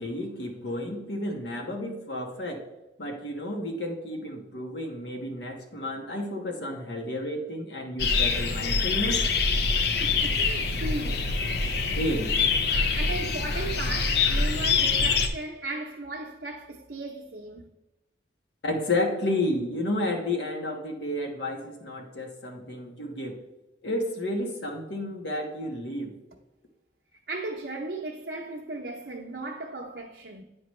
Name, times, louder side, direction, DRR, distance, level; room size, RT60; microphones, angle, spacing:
voice 1, 0.0-2.6 3.0-9.2 11.9-12.4 18.6-23.4 23.8-26.1, left 1 dB, 80° left, 1.3 m, -31 dB
sound 1, 8.0-15.3, left 4 dB, 60° left, 0.6 m, -25 dB
voice 2, 9.9-11.5 13.0-17.7 27.1-30.4, right 2 dB, 65° right, 0.7 m, -36 dB
9.2 x 5.1 x 3.1 m
head